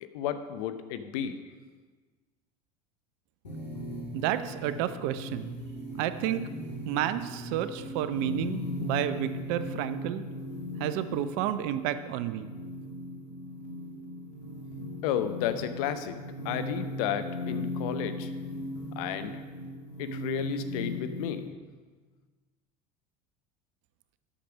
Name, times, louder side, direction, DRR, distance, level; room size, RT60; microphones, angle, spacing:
voice 1, 0.0-1.4 15.0-16.2 16.4-18.3 19.0-19.3 20.0-21.5, left 9 dB, 65° left, 10 dB, 0.8 m, -32 dB
sound 1, 3.4-21.5, left 1 dB, 85° left, 2.2 m, -38 dB
voice 2, 4.1-5.5 6.0-6.5 6.8-10.2 10.8-12.5, right 11 dB, 60° right, 12 dB, 0.6 m, -31 dB
8.7 x 6.8 x 5.9 m, 1.4 s
hypercardioid pair, 75°, 21 cm